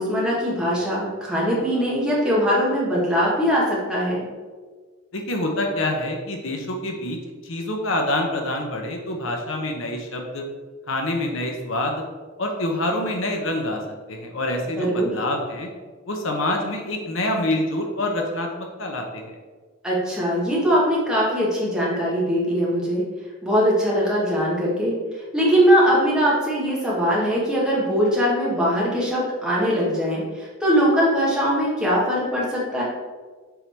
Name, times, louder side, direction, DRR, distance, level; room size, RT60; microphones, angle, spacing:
voice 1, 0.0-4.3 14.8-15.1 19.8-23.0 23.4-24.9 25.3-32.8, equal, 5° right, -7 dB, 1.7 m, -21 dB
voice 2, 5.1-10.4 10.9-12.0 12.4-13.8 14.1-15.7 16.1-19.3, left 1 dB, 65° left, 2 dB, 0.9 m, -26 dB
7.0 x 3.8 x 4.6 m, 1.4 s
head